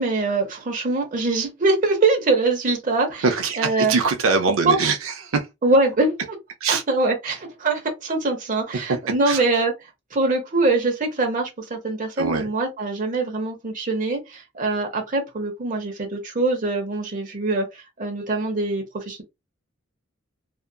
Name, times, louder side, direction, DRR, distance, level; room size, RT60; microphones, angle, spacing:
voice 1, 0.0-3.2 3.6-3.9 4.6-4.8 5.6-6.1 6.7-9.7 10.1-19.2, right 3 dB, 40° right, 0.8 m, -23 dB
voice 2, 3.2-5.5 6.6-6.8 8.7-9.0 9.3-9.4 12.2-12.5, right 4 dB, 90° right, 0.5 m, -23 dB
2.7 x 2.4 x 2.3 m
head